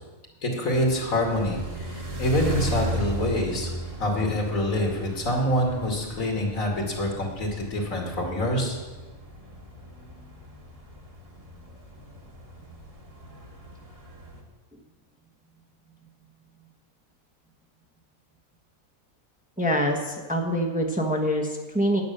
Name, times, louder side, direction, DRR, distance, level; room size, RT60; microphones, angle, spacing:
voice 1, 0.4-3.7 4.0-8.8, left 1 dB, 70° left, 0 dB, 2.7 m, -26 dB
sound 1, 0.7-14.4, right 1 dB, 25° right, 1.7 m, -37 dB
voice 2, 19.6-22.0, equal, 5° right, 1 dB, 1.1 m, -25 dB
9.7 x 9.6 x 6.7 m, 1.2 s
omnidirectional pair, 1.4 m